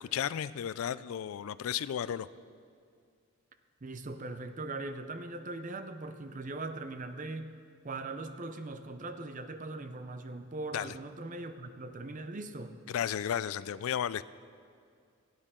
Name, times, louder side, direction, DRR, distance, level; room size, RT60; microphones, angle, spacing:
voice 1, 0.0-2.3 10.7-10.9 12.9-14.2, left 9 dB, 70° left, 17 dB, 0.3 m, -33 dB
voice 2, 3.8-7.6 7.8-12.8, right 2 dB, 35° right, 9 dB, 0.6 m, -40 dB
17.5 x 9.3 x 3.7 m, 2.2 s
head